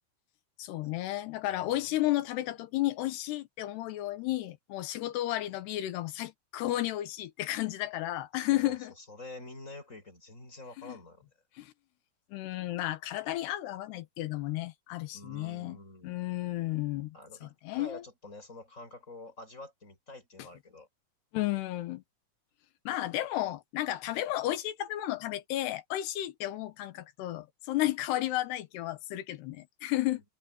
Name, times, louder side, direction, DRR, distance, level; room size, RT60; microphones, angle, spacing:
voice 1, 0.6-8.9 10.8-11.0 11.6-11.7 12.3-15.8 16.0-17.2 17.4-18.0 21.3-22.0 22.9-30.2, left 15 dB, 90° left, 3.3 m, -33 dB
voice 2, 1.5-2.0 8.5-11.3 15.1-16.2 17.1-20.9, left 2 dB, 20° left, 7.1 m, -48 dB
open air
omnidirectional pair, 4.6 m